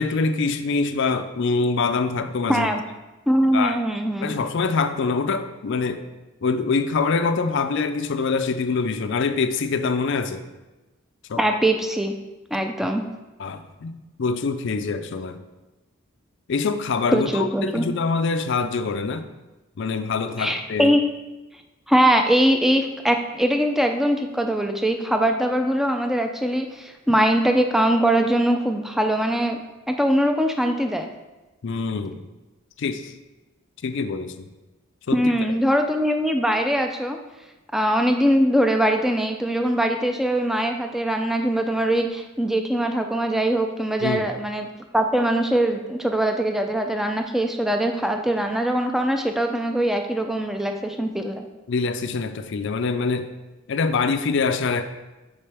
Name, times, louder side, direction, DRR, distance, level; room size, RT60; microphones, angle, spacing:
voice 1, 0.0-2.7 3.5-3.8 4.2-6.0 6.4-10.4 11.3-11.4 13.4-15.4 16.5-19.2 19.8-20.9 31.6-32.2 32.8-33.1 33.8-34.5 35.1-35.2 44.0-44.3 51.7-53.3 53.7-54.8, left 4 dB, 60° left, 9 dB, 0.4 m, -24 dB
voice 2, 2.5-2.8 3.3-4.4 11.4-12.1 12.5-13.0 17.1-17.9 20.4-21.0 21.9-29.6 29.9-31.1 35.1-37.2 37.7-44.7 44.9-51.5, right 1 dB, ahead, 5 dB, 0.4 m, -22 dB
8.6 x 4.3 x 3.4 m, 1.1 s
head